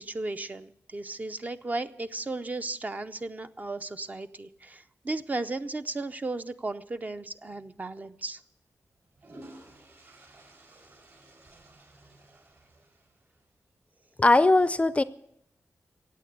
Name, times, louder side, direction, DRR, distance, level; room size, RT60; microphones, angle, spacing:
voice 1, 0.0-8.4, right 2 dB, 30° right, 0.6 m, -35 dB
sound 1, 7.5-7.7 8.8-13.4, right 1 dB, 50° right, 4.7 m, -53 dB
voice 2, 14.2-15.0, left 2 dB, 25° left, 0.5 m, -20 dB
16.0 x 8.5 x 8.0 m
wide cardioid pair, 125°, 5 cm